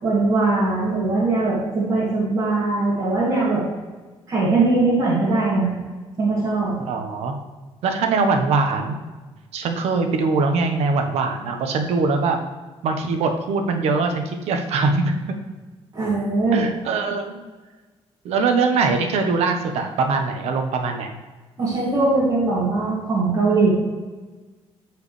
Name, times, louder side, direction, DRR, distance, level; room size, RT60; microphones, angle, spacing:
voice 1, 0.0-3.6 4.3-5.7 6.2-6.8 15.9-16.7 21.6-23.7, right 3 dB, 35° right, -8 dB, 2.4 m, -20 dB
voice 2, 6.8-7.3 7.8-9.0 9.5-12.4 12.8-15.1 16.5-17.4 18.2-21.1, right 4 dB, 80° right, 5 dB, 1.1 m, -22 dB
13.5 x 4.9 x 3.3 m, 1.3 s
cardioid pair, 175°, 11 cm